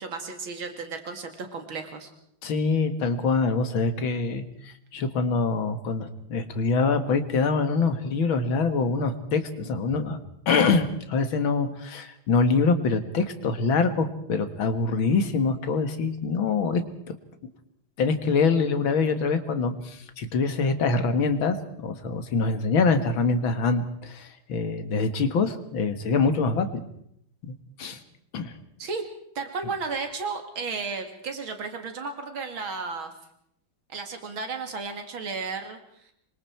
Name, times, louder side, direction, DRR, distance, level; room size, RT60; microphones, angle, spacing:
voice 1, 0.0-2.1 28.8-29.0 29.3-33.1 33.9-36.1, right 4 dB, 90° right, 6 dB, 3.0 m, -34 dB
voice 2, 2.4-10.2 10.5-16.8 18.0-26.8 27.4-28.0 28.3-28.5, left 4 dB, 80° left, 9 dB, 2.5 m, -25 dB
27.0 x 23.5 x 4.6 m, 0.73 s
omnidirectional pair, 2.2 m